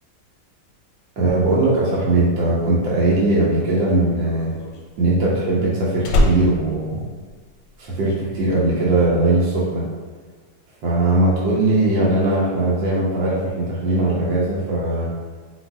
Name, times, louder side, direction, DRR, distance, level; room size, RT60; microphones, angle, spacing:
voice 1, 1.2-4.5 5.0-7.1 7.8-9.8 10.8-15.1, right 2 dB, 70° right, -7 dB, 1.5 m, -19 dB
Slam, 3.7-7.8 8.1-8.5, left 1 dB, 70° left, 1.1 m, -24 dB
4.3 x 4.0 x 2.3 m, 1.5 s
omnidirectional pair, 2.1 m